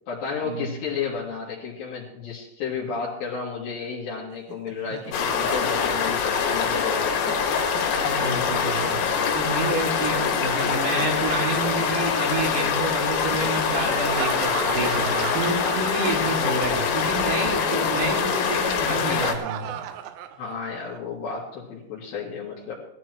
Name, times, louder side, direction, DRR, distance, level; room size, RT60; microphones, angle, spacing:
voice 1, 0.1-7.3 20.4-22.7, left 5 dB, 60° left, -7 dB, 3.8 m, -32 dB
Laughter, 4.3-8.4 10.1-12.2 13.9-17.0 17.2-17.4 18.9-21.0, right 10 dB, 80° right, 2.5 m, -37 dB
sound 1, 5.1-19.3, left 6 dB, 75° left, 4.1 m, -24 dB
voice 2, 8.0-19.7, right 2 dB, 50° right, 0 dB, 3.1 m, -29 dB
19.5 x 13.5 x 3.0 m, 0.81 s
omnidirectional pair, 5.8 m